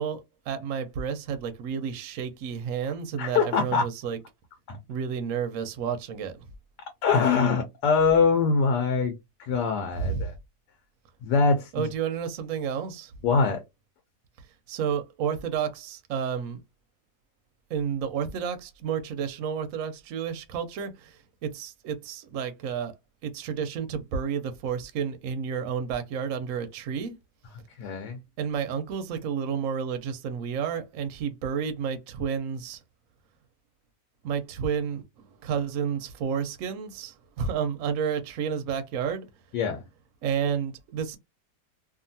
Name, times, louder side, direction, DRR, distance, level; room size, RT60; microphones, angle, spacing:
voice 1, 0.0-4.2 4.9-6.4 9.9-10.3 11.7-13.1 14.7-16.6 17.7-22.9 23.2-27.2 28.4-32.8 34.2-39.3 40.2-41.2, right 7 dB, 65° right, 0.8 m, -31 dB
voice 2, 3.2-3.8 4.7-4.8 7.0-9.1 9.4-10.3 11.2-11.9 13.2-13.6 27.8-28.2 39.5-39.8, left 5 dB, 80° left, 1.2 m, -23 dB
2.8 x 2.5 x 2.6 m
omnidirectional pair, 1.8 m